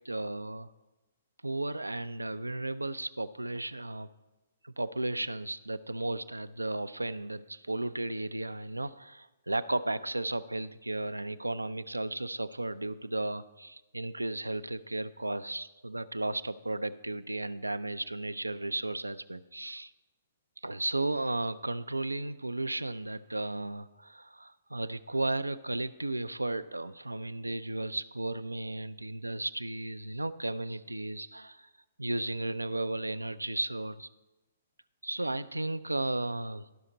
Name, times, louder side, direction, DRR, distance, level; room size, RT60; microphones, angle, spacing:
voice 1, 0.0-0.7 1.4-4.1 4.6-19.9 20.6-31.7 32.0-34.1 35.0-36.6, right 2 dB, 90° right, 14 dB, 0.3 m, -34 dB
12.0 x 5.7 x 4.0 m, 1.1 s
figure-of-eight pair, 120°, 0 cm